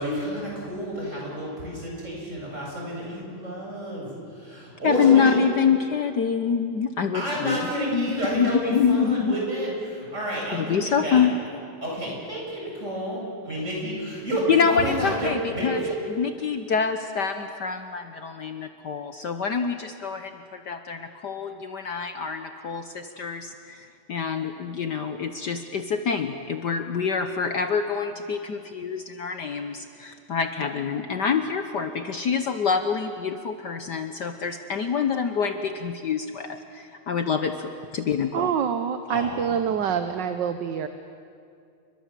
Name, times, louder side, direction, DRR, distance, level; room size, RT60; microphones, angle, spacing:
voice 1, 0.0-4.1 4.4-5.3 7.1-11.2 11.8-15.9 39.1-39.5, equal, 30° right, -3 dB, 8.5 m, -30 dB
voice 2, 4.8-7.6 7.9-9.3 10.5-11.4 14.5-38.5, left 6 dB, 55° left, 7 dB, 1.5 m, -26 dB
voice 3, 38.3-40.9, right 8 dB, 60° right, 9 dB, 1.5 m, -26 dB
30.0 x 23.5 x 7.6 m, 2.4 s
omnidirectional pair, 2.4 m